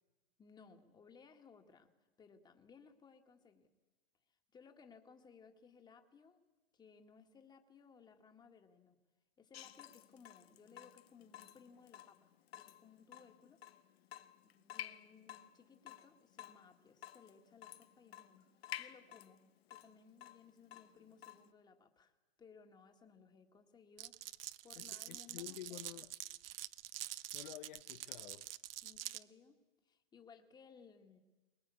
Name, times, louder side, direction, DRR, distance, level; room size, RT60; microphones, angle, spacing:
voice 1, 0.4-3.7 4.5-6.4 6.7-9.0 9.4-13.6 14.4-18.5 18.8-19.4 19.7-22.1 22.4-24.2 24.6-25.8 28.8-31.2, left 5 dB, 15° left, 1.8 m, -62 dB
Water tap faucet / Drip, 9.5-21.5, left 11 dB, 75° left, 1.3 m, -53 dB
Glass, 24.0-29.2, right 13 dB, 65° right, 0.9 m, -46 dB
voice 2, 24.8-26.1 27.3-28.5, left 15 dB, 55° left, 0.7 m, -51 dB
23.5 x 20.5 x 8.4 m
hypercardioid pair, 145°, 31 cm